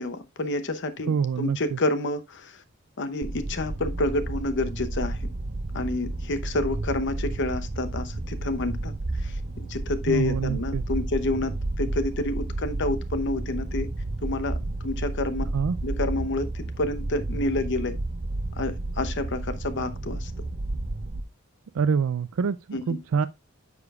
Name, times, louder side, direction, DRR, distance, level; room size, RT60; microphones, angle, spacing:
voice 1, 0.0-2.6 3.0-5.3 5.7-13.9 14.2-15.5 15.8-18.0 18.6-20.3 22.7-23.0, left 2 dB, 60° left, 0.9 m, -29 dB
voice 2, 1.1-1.8 10.1-10.8 15.5-15.8 21.7-23.3, right 6 dB, 80° right, 0.4 m, -26 dB
sound 1, 3.2-21.2, right 2 dB, 40° right, 0.6 m, -31 dB
9.6 x 6.8 x 2.4 m
head